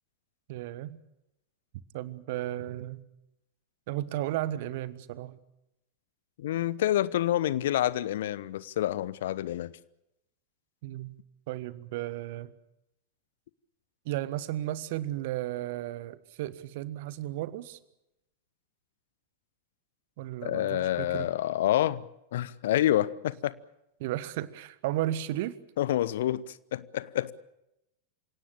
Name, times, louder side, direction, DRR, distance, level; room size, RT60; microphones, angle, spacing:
voice 1, 0.5-1.0 1.9-3.0 3.9-5.4 10.8-11.1 11.5-12.5 14.0-17.8 20.2-21.3 24.0-25.6, right 14 dB, 50° right, 17 dB, 1.3 m, -34 dB
voice 2, 6.4-9.7 20.4-22.0 22.3-23.5 25.8-27.3, left 13 dB, 55° left, 20 dB, 0.9 m, -28 dB
27.0 x 17.5 x 8.8 m, 0.87 s
figure-of-eight pair, 90°, 0 cm